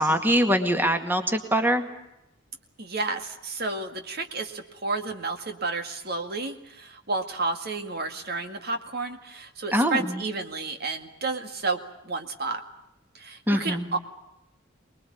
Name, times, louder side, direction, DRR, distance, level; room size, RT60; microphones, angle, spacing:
voice 1, 0.0-1.8 9.7-10.2 13.5-13.9, equal, 10° right, 6 dB, 2.1 m, -23 dB
voice 2, 2.8-11.8 12.0-12.6 13.1-14.0, right 3 dB, 50° right, 6 dB, 2.0 m, -31 dB
24.5 x 21.0 x 8.7 m, 0.87 s
head